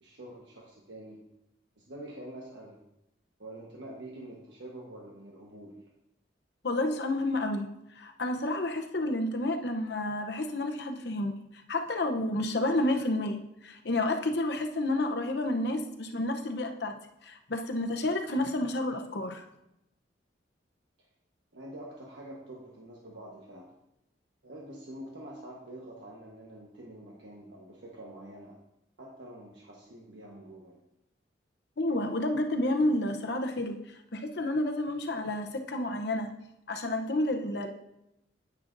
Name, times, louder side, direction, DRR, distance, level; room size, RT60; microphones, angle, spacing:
voice 1, 0.0-1.2 1.8-2.8 3.4-5.8 21.5-23.7 24.4-28.5 29.0-30.8, right 1 dB, 75° right, -2 dB, 1.2 m, -46 dB
voice 2, 6.6-7.7 8.0-11.3 11.7-16.9 17.2-19.4 31.8-33.8 34.1-36.3 36.7-37.7, left 1 dB, 60° left, 5 dB, 0.8 m, -30 dB
9.6 x 8.7 x 2.6 m, 0.85 s
head